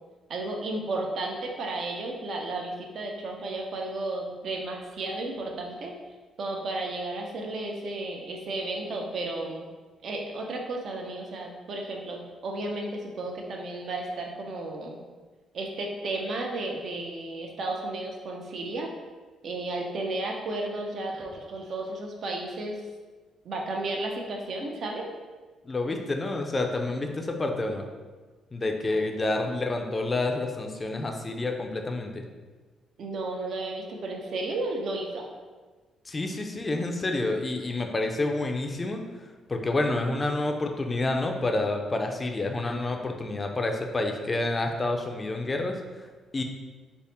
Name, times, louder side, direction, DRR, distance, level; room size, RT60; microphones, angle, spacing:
voice 1, 0.3-5.9 6.4-9.7 10.0-15.0 15.5-18.9 19.4-22.7 23.4-25.1 28.9-29.0 33.0-35.3, right 2 dB, 60° right, 1 dB, 0.6 m, -33 dB
voice 2, 25.6-27.9 28.5-32.2 36.1-39.1 39.5-46.1 46.3-46.4, left 2 dB, 25° left, 3 dB, 0.4 m, -28 dB
3.4 x 2.1 x 4.1 m, 1.3 s
cardioid pair, 90°, 0 cm